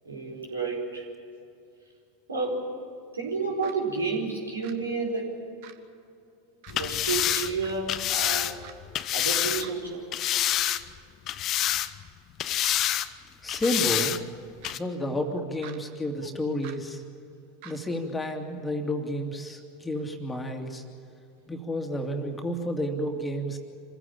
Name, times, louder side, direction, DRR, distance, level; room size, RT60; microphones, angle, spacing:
voice 1, 0.0-1.0 2.3-2.7 3.1-5.4 6.7-8.5 9.1-10.1, right 4 dB, 80° right, 0 dB, 4.9 m, -30 dB
sound 1, 3.6-3.7 4.6-4.7 5.6-5.8 6.6-6.7 7.6-7.7 8.6-8.7 9.6-9.8 10.6-10.7 11.6-11.8 12.6-12.7 13.6-13.8 14.6-14.8 15.6-15.8 16.6-16.8 17.6-17.8, right 10 dB, 55° right, 1.6 m, -44 dB
sound 2, 6.7-9.7 10.1-11.0 11.3-12.1 12.4-13.1 13.5-14.2 14.6-14.8, left 12 dB, 40° left, 0.8 m, -27 dB
voice 2, 13.4-14.2 14.7-17.0 17.6-20.8 21.5-23.6, equal, 10° left, 3 dB, 2.6 m, -31 dB
26.5 x 16.0 x 8.8 m, 2.6 s
figure-of-eight pair, 85°, 0 cm